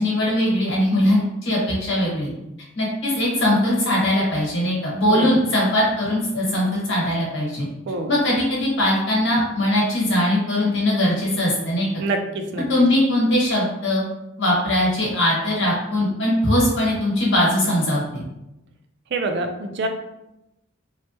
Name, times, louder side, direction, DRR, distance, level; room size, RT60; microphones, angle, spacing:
voice 1, 0.0-2.3 2.7-7.7 8.1-11.9 12.7-14.0 14.4-18.2, left 1 dB, 65° left, -4 dB, 1.2 m, -20 dB
voice 2, 12.0-12.7 19.1-19.9, right 2 dB, 60° right, 5 dB, 0.4 m, -26 dB
3.1 x 2.1 x 2.8 m, 0.91 s
head